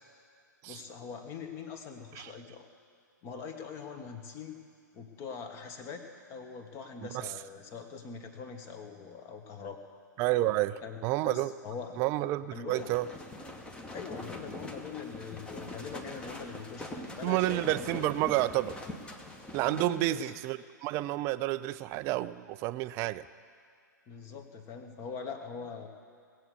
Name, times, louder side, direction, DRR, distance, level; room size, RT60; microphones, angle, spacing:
voice 1, 0.6-2.7 3.2-4.6 4.9-9.8 10.8-12.0 12.5-12.9 13.9-18.0 19.6-20.3 24.1-25.9, left 5 dB, 25° left, 6 dB, 1.4 m, -43 dB
voice 2, 10.2-11.5 12.0-13.1 17.2-18.8 19.5-23.2, right 16 dB, 25° right, 15 dB, 0.4 m, -30 dB
sound 1, 12.8-19.9, left 1 dB, 10° left, 1.1 m, -43 dB
19.0 x 8.1 x 8.4 m, 2.2 s
figure-of-eight pair, 110°, 10 cm